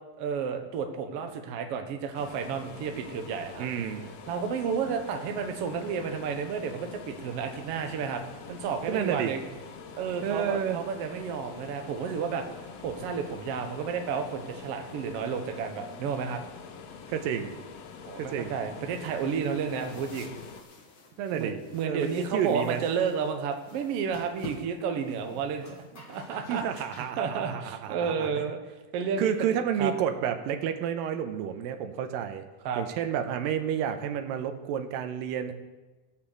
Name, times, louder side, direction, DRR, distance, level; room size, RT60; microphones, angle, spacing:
voice 1, 0.2-3.7 4.3-8.2 8.5-9.4 10.0-12.4 12.8-16.4 18.0-20.3 21.3-25.7 25.9-26.6 27.2-28.6 28.9-29.3 29.8-29.9 32.6-32.8, right 6 dB, 65° right, 5 dB, 1.5 m, -31 dB
sound 1, 2.1-20.6, left 6 dB, 75° left, 1.5 m, -45 dB
voice 2, 3.6-4.1 8.9-9.3 10.2-10.8 17.1-17.6 18.2-18.6 21.2-21.6 21.8-22.8 26.5-28.3 29.2-32.5 32.8-35.5, right 8 dB, 90° right, 7 dB, 2.5 m, -30 dB
sound 2, 18.9-27.0, left 4 dB, 55° left, 1.4 m, -50 dB
sound 3, 24.0-24.6 25.6-28.3, left 1 dB, 30° left, 1.7 m, -50 dB
16.5 x 5.7 x 6.6 m, 1.2 s
omnidirectional pair, 4.0 m